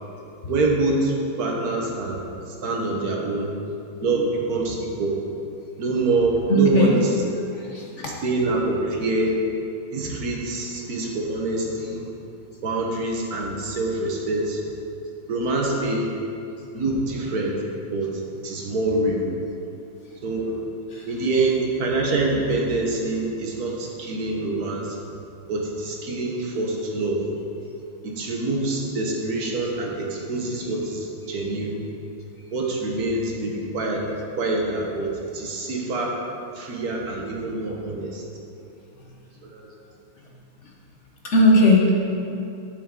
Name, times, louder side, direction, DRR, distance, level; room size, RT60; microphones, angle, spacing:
voice 1, 0.5-3.5 4.0-5.2 5.8-7.2 8.2-9.4 9.9-12.1 12.6-14.6 15.3-16.1 16.7-17.6 17.9-19.3 20.2-20.6 21.1-25.0 25.5-27.2 28.0-31.8 32.5-34.0 34.4-36.1 36.5-38.2 39.4-39.7, right 2 dB, 50° right, -1 dB, 1.4 m, -25 dB
voice 2, 6.5-6.9 7.5-8.1 20.9-21.0 41.3-42.1, left 1 dB, 55° left, -2 dB, 0.8 m, -18 dB
9.0 x 7.2 x 3.7 m, 2.7 s
omnidirectional pair, 2.3 m